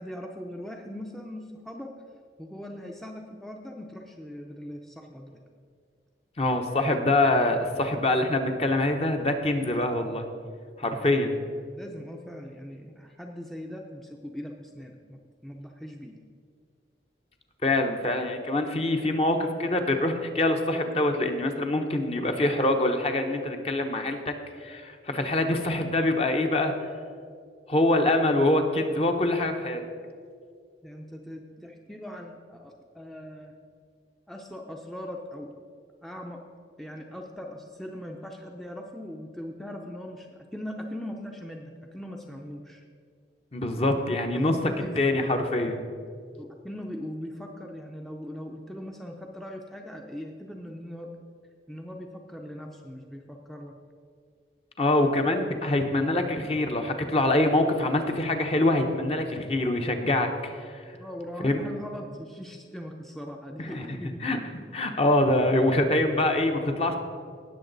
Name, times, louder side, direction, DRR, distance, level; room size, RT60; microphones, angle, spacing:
voice 1, 0.0-1.9 2.4-5.4 11.0-11.2 11.8-16.2 30.8-33.6 34.3-35.5 36.0-36.4 36.8-42.8 44.3-45.0 46.4-51.2 51.7-53.8 60.9-64.2, equal, ahead, 1 dB, 0.5 m, -40 dB
voice 2, 6.4-10.3 10.8-11.3 17.6-24.3 24.6-26.7 27.7-29.8 43.5-44.5 45.0-45.8 54.8-60.8 61.4-61.6 63.6-64.0 64.2-64.4 64.7-67.0, left 1 dB, 35° left, 5 dB, 0.8 m, -25 dB
18.0 x 6.9 x 4.0 m, 2.2 s
head